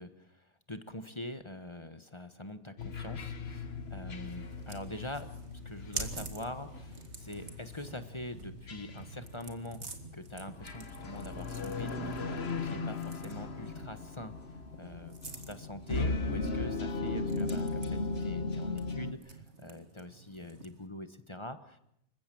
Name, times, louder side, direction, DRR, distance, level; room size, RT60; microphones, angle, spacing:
voice 1, 0.0-5.3 5.6-9.8 10.1-14.3 14.8-21.8, left 1 dB, 20° left, 10 dB, 1.2 m, -44 dB
sound 1, 2.8-19.1, left 3 dB, 45° left, 1.5 m, -38 dB
sound 2, 4.2-20.9, right 4 dB, 50° right, 2.4 m, -48 dB
27.5 x 15.5 x 7.6 m, 0.77 s
omnidirectional pair, 1.5 m